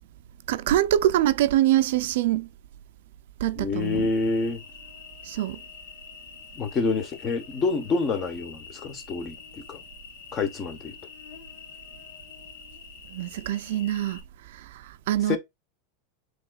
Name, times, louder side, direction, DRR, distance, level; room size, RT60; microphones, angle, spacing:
voice 1, 0.5-2.5 3.4-4.1 5.2-5.6 13.1-15.4, right 13 dB, 65° right, 0.5 m, -24 dB
voice 2, 3.6-4.6 6.6-9.8 10.3-10.9 15.3-15.4, left 4 dB, 25° left, 1.0 m, -27 dB
Cricket, 3.8-14.2, left 6 dB, 60° left, 1.5 m, -46 dB
7.0 x 3.1 x 2.3 m
supercardioid pair, 170°, 0 cm